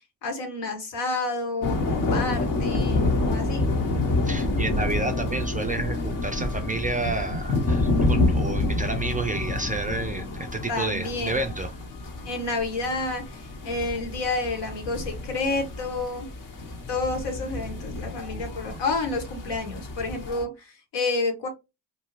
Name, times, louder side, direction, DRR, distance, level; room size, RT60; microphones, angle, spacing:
voice 1, 0.2-3.7 10.7-11.4 12.2-16.3 16.9-20.5 20.9-21.5, left 3 dB, 65° left, 1.2 m, -29 dB
sound 1, 1.6-20.4, left 2 dB, 45° left, 1.0 m, -28 dB
voice 2, 4.2-11.7, right 3 dB, 20° right, 0.3 m, -30 dB
2.6 x 2.3 x 3.1 m
hypercardioid pair, 60°, 46 cm